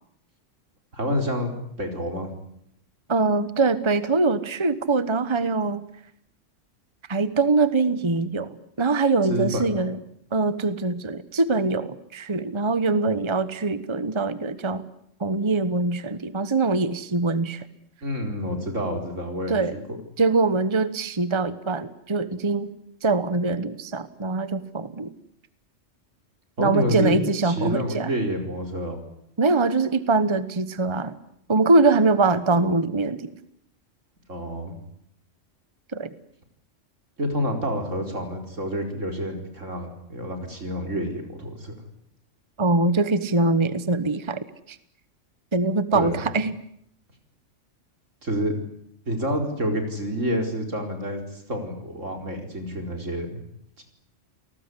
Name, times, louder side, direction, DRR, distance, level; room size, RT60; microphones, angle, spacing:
voice 1, 0.9-2.3 9.3-9.8 18.0-19.8 26.6-27.2 27.4-29.0 34.3-34.8 37.2-41.7 45.9-46.3 48.2-48.5 49.1-53.4 53.8-53.9, equal, 80° right, 4 dB, 5.0 m, -28 dB
voice 2, 3.1-5.8 7.1-10.0 10.3-14.8 15.2-17.6 19.5-19.7 20.2-22.7 23.0-25.1 26.6-28.1 29.4-31.1 31.5-33.3 35.9-36.1 42.6-44.4 44.7-44.8 45.5-46.5, right 3 dB, 25° right, 14 dB, 1.1 m, -23 dB
29.5 x 19.0 x 9.9 m, 0.72 s
omnidirectional pair, 1.3 m